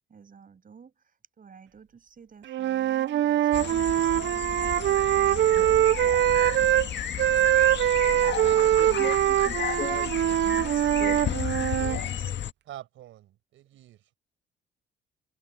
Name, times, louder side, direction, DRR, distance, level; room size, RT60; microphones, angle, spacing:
voice 1, 0.1-5.9 10.5-11.2 11.9-12.3 13.7-13.8, right 6 dB, 45° right, 7.0 m, -50 dB
Wind instrument woodwind instrument, 2.5-6.9 7.2-12.0, right 13 dB, 65° right, 0.6 m, -23 dB
sound 1, 3.5-12.5, left 9 dB, 65° left, 1.8 m, -33 dB
voice 2, 5.5-6.0 8.0-8.7 11.7-12.1 12.7-14.0, right 13 dB, 85° right, 5.2 m, -45 dB
voice 3, 8.8-10.6 11.0-11.2, left 5 dB, 35° left, 1.7 m, -38 dB
cardioid pair, 90°, 20 cm